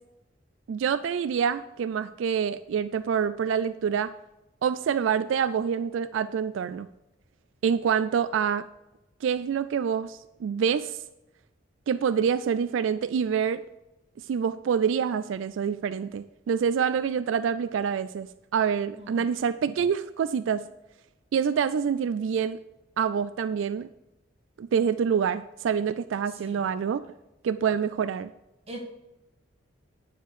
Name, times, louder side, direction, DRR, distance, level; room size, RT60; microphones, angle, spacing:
voice 1, 0.7-4.1 4.6-6.9 7.6-8.7 9.2-11.0 11.9-13.6 14.2-20.6 21.3-22.6 23.0-23.9 24.6-27.0 27.4-28.3, right 7 dB, 80° right, 13 dB, 0.3 m, -26 dB
voice 2, 19.0-19.3 26.3-26.6 28.7-28.8, right 1 dB, 30° right, 1 dB, 1.6 m, -42 dB
10.0 x 5.0 x 6.6 m, 0.95 s
head